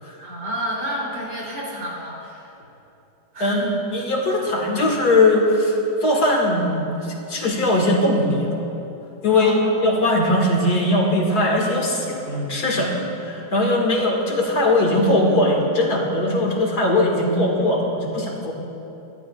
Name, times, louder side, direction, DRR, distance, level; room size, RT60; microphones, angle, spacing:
voice 1, 0.2-2.5 3.3-3.7 9.3-10.0, right 1 dB, 85° right, -5 dB, 3.9 m, -30 dB
voice 2, 3.4-8.6 9.2-18.5, left 1 dB, 70° left, -1 dB, 2.4 m, -20 dB
24.5 x 12.5 x 2.4 m, 2.9 s
omnidirectional pair, 1.8 m